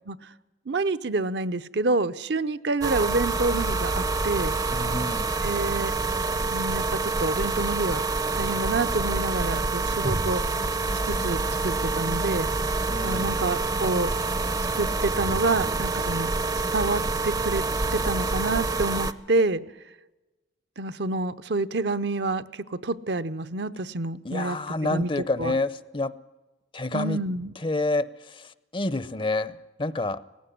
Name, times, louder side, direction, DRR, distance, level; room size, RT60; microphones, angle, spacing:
voice 1, 0.7-4.5 5.4-5.9 6.5-8.0 8.3-10.4 11.0-12.5 13.0-14.1 14.7-16.3 16.7-17.6 17.9-19.6 20.8-24.6 24.8-25.1 25.4-25.6 26.9-27.5, right 2 dB, 65° right, 11 dB, 0.8 m, -28 dB
sound 1, 2.8-19.1, right 3 dB, 20° right, 0.6 m, -27 dB
voice 2, 4.7-5.3 12.9-13.4 24.2-26.1 26.7-27.2 27.6-30.2, left 2 dB, 25° left, 16 dB, 0.6 m, -28 dB
18.5 x 15.5 x 10.0 m, 1.1 s
head